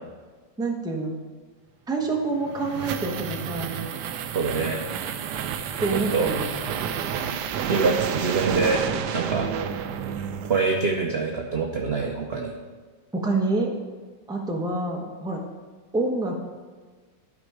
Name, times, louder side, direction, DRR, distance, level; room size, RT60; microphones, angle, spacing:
voice 1, 0.6-1.2 1.9-3.7 5.8-6.7 13.1-13.7 14.3-15.4 15.9-16.4, right 2 dB, 5° right, 0 dB, 0.8 m, -27 dB
sound 1, 2.2-11.0, right 8 dB, 75° right, 1.1 m, -30 dB
voice 2, 4.3-4.8 5.9-6.3 7.7-8.8 9.1-9.5 10.4-12.5, right 4 dB, 50° right, 1 dB, 0.7 m, -25 dB
12.5 x 5.3 x 4.9 m, 1.4 s
omnidirectional pair, 2.0 m